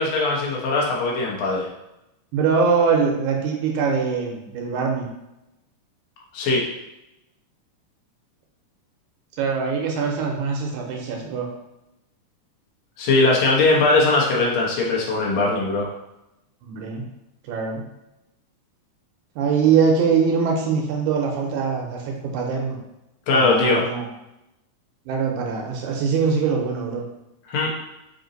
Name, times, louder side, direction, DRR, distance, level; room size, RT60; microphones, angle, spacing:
voice 1, 0.0-1.7 6.3-6.6 13.0-15.9 23.3-23.8 27.5-27.7, left 3 dB, 70° left, -3 dB, 1.3 m, -20 dB
voice 2, 2.3-5.1 9.4-11.5 16.6-17.1 17.4-17.9 19.4-22.8 23.3-24.1 25.1-27.0, right 5 dB, 75° right, 0 dB, 2.0 m, -22 dB
5.0 x 2.7 x 3.9 m, 0.90 s
omnidirectional pair, 3.7 m